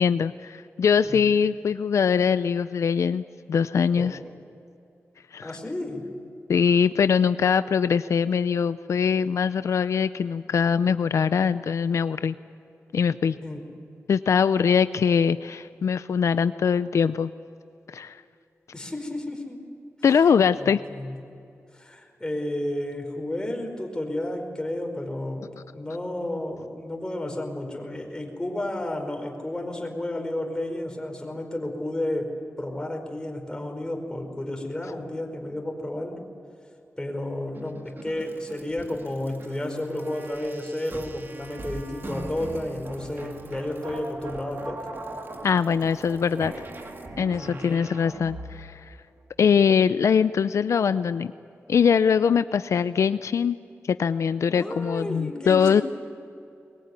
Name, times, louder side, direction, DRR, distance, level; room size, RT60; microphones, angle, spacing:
voice 1, 0.0-3.2 3.5-4.2 5.3-5.5 6.5-12.3 12.9-13.4 14.1-17.3 17.9-18.2 20.0-20.8 45.4-46.5 47.2-49.0 49.4-51.3 51.7-53.6 53.9-55.8, left 6 dB, 80° left, 13 dB, 0.5 m, -22 dB
voice 2, 1.0-1.3 3.9-4.2 5.4-6.1 13.4-13.7 18.7-19.6 20.5-21.2 21.7-25.5 25.7-36.2 37.0-44.8 47.4-47.9 54.5-55.8, left 1 dB, 15° left, 2 dB, 4.8 m, -32 dB
sound 1, 37.5-48.8, right 2 dB, 45° right, 2.2 m, -40 dB
22.5 x 21.5 x 9.7 m, 2.6 s
wide cardioid pair, 100°, 5 cm